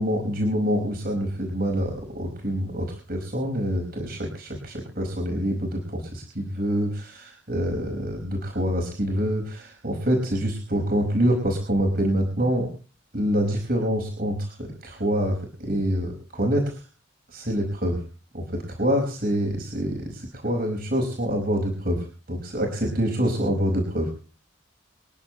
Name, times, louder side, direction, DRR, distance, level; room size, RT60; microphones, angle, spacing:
voice 1, 0.0-12.7 13.1-16.8 17.3-18.0 18.3-24.1, equal, 50° right, 1 dB, 5.1 m, -26 dB
27.5 x 10.5 x 3.1 m, 0.38 s
head